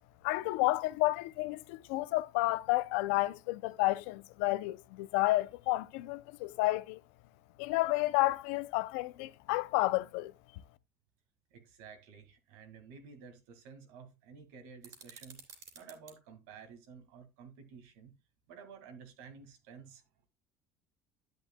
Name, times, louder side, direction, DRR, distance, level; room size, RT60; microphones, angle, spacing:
voice 1, 0.2-7.0 7.6-10.3, left 19 dB, 85° left, 0.5 m, -31 dB
voice 2, 11.5-15.4 15.7-18.1 18.5-20.3, right 6 dB, 80° right, 2.0 m, -52 dB
sound 1, 14.8-16.2, right 6 dB, 55° right, 3.0 m, -53 dB
10.5 x 8.1 x 2.2 m
supercardioid pair, 90°, 7 cm